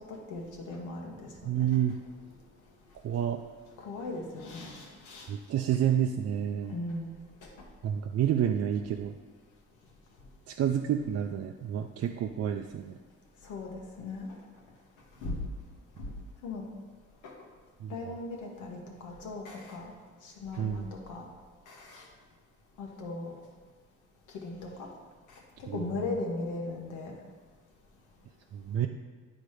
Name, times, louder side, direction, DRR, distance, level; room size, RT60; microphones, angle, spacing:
voice 1, 0.1-1.3 1.5-1.7 3.8-5.3 6.7-7.1 13.4-13.7 14.0-14.3 15.2-15.4 16.0-16.1 16.4-16.6 17.2-17.3 17.9-19.9 20.2-21.3 21.7-22.1 22.8-23.3 24.3-24.9 25.7-27.1, left 3 dB, 90° left, 0 dB, 1.5 m, -38 dB
voice 2, 1.4-2.0 3.0-3.4 5.3-6.7 7.8-9.2 10.5-13.0 17.8-18.1 20.6-20.9 25.7-25.8 28.5-28.9, right 9 dB, 55° right, 4 dB, 0.5 m, -29 dB
9.8 x 3.9 x 4.9 m, 1.5 s
cardioid pair, 90°, 30 cm